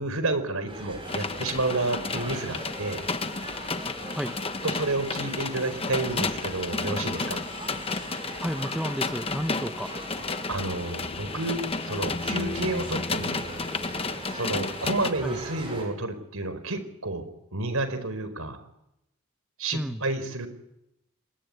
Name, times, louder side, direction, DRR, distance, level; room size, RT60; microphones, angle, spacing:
voice 1, 0.0-3.0 4.6-7.4 10.5-11.6 11.8-13.4 14.3-18.6 19.6-20.5, right 2 dB, 80° right, 12 dB, 4.5 m, -30 dB
sound 1, 0.7-15.9, right 1 dB, 25° right, 7.8 m, -41 dB
sound 2, 1.1-15.1, left 3 dB, 25° left, 1.2 m, -32 dB
voice 2, 8.4-9.9 15.2-15.4 19.7-20.0, equal, ahead, 8 dB, 1.0 m, -31 dB
27.5 x 21.0 x 9.6 m, 0.85 s
head